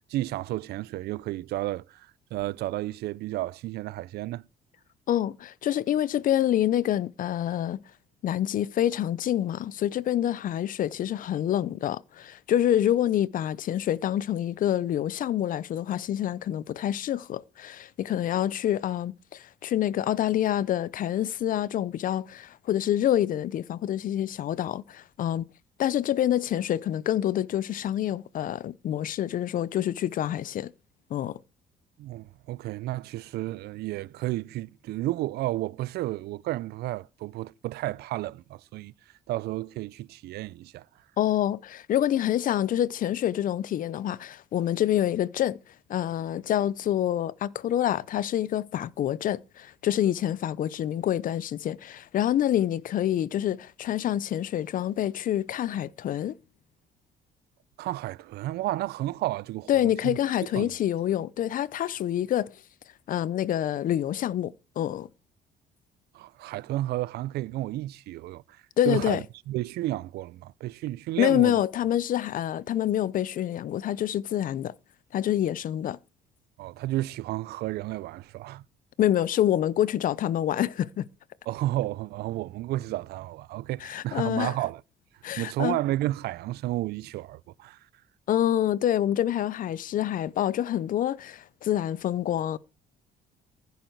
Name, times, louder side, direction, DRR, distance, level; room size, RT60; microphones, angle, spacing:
voice 1, 0.1-4.4 32.0-38.9 39.3-40.8 57.8-60.2 60.6-60.7 66.1-71.6 76.6-78.6 81.5-84.8 85.4-87.8, right 16 dB, 70° right, 0.5 m, -32 dB
voice 2, 5.1-7.8 8.2-25.5 25.8-30.7 31.1-31.4 41.2-45.6 45.9-56.4 59.7-62.6 63.1-65.1 68.8-69.2 71.2-74.7 75.1-76.0 79.0-81.1 83.8-84.5 85.2-85.8 88.3-92.6, left 11 dB, 55° left, 0.7 m, -27 dB
15.0 x 8.2 x 4.6 m
cardioid pair, 110°, 17 cm